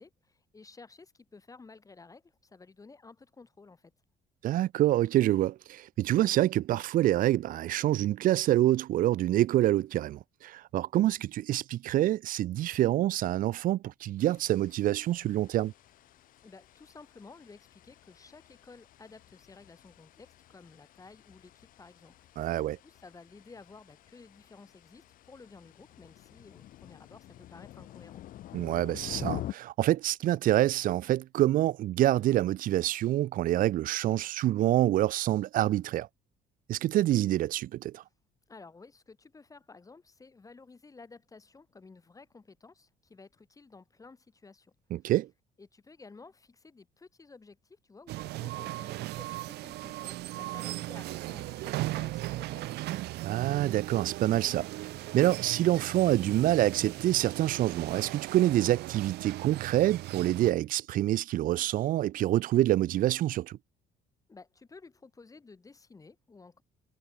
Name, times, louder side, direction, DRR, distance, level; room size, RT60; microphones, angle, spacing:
voice 1, 0.0-3.9 16.4-22.3 22.5-28.2 38.5-44.7 45.6-53.1 64.3-66.6, left 4 dB, 20° left, 1.2 m, -53 dB
voice 2, 4.4-15.7 22.4-22.8 28.5-36.1 36.7-38.0 44.9-45.3 53.2-54.7 55.1-63.6, right 14 dB, 55° right, 0.4 m, -26 dB
sound 1, 14.2-29.5, left 13 dB, 55° left, 0.5 m, -47 dB
sound 2, 48.1-60.5, right 17 dB, 75° right, 0.8 m, -37 dB
cardioid pair, 110°, 17 cm